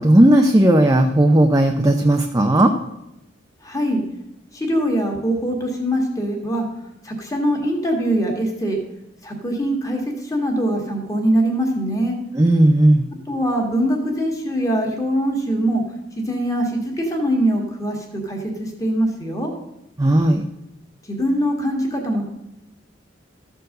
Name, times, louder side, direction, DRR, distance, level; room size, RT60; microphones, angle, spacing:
voice 1, 0.0-2.7 12.3-13.0 20.0-20.4, right 1 dB, 15° right, 3 dB, 0.5 m, -15 dB
voice 2, 3.6-4.0 4.5-6.7 7.0-8.8 9.2-12.2 13.3-15.8 16.2-19.5 21.0-22.2, right 1 dB, 15° left, 1 dB, 1.7 m, -22 dB
13.5 x 4.6 x 6.5 m, 0.89 s
head